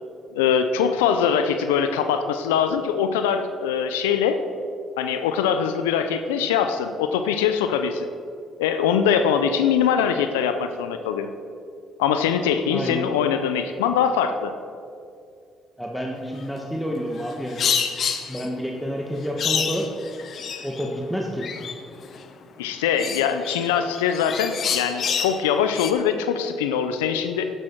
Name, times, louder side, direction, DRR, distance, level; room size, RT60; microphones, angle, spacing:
voice 1, 0.3-4.4 5.0-8.1 8.6-11.3 12.0-14.5 22.6-27.4, left 7 dB, 90° left, 8 dB, 0.5 m, -22 dB
voice 2, 12.7-13.2 15.8-17.8 18.3-19.8 20.6-21.5, equal, ahead, -1 dB, 1.6 m, -29 dB
sound 1, 17.1-18.5 19.4-21.0 21.4-22.2 23.0-25.4 25.7-25.9, left 7 dB, 60° left, 0.8 m, -28 dB
10.5 x 10.0 x 4.7 m, 2.4 s
hypercardioid pair, 55°, 0 cm